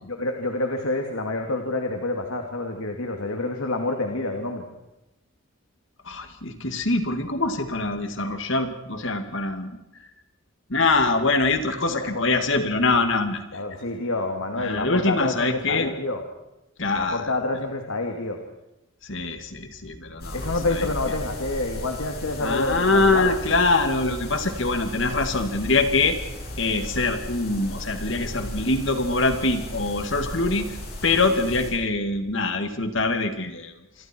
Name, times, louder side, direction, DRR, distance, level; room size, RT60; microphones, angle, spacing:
voice 1, 0.0-4.6 11.9-12.3 13.5-16.2 17.0-18.4 20.3-23.6, left 2 dB, 85° left, 3 dB, 2.6 m, -28 dB
voice 2, 6.0-9.7 10.7-13.6 14.6-15.9 16.8-17.3 19.0-20.9 22.4-26.2 26.6-30.8 31.0-33.7, left 3 dB, 60° left, 7 dB, 2.3 m, -24 dB
sound 1, 20.2-31.7, left 1 dB, 45° left, 7.5 m, -35 dB
28.0 x 24.0 x 4.6 m, 0.93 s
head